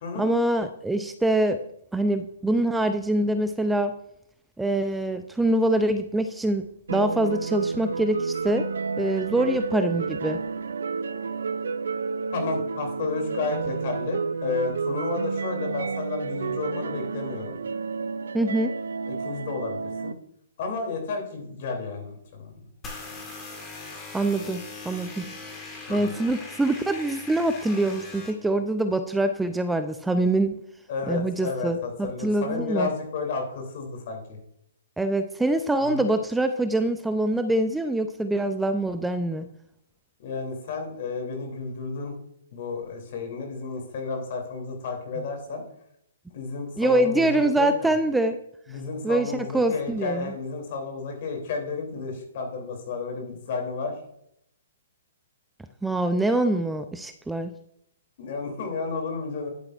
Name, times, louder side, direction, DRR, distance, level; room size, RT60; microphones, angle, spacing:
voice 1, 0.2-1.6 1.9-3.9 4.6-6.6 6.9-8.7 9.0-10.4 18.3-18.7 24.1-25.2 25.9-30.6 31.1-32.9 35.0-39.5 46.8-48.4 49.0-50.3 55.8-57.5, right 1 dB, 5° right, 9 dB, 0.4 m, -24 dB
sound 1, 6.9-20.1, right 4 dB, 75° right, 0.4 m, -30 dB
voice 2, 12.3-17.5 19.1-20.1 20.6-22.6 25.9-26.1 30.9-34.4 35.8-36.1 40.2-42.1 42.5-45.6 46.3-47.9 48.7-53.9 58.2-59.5, left 4 dB, 50° left, 2 dB, 2.8 m, -32 dB
sound 2, 22.8-28.3, left 3 dB, 20° left, 2.1 m, -40 dB
10.5 x 8.8 x 2.4 m, 0.75 s
hypercardioid pair, 130°, 0 cm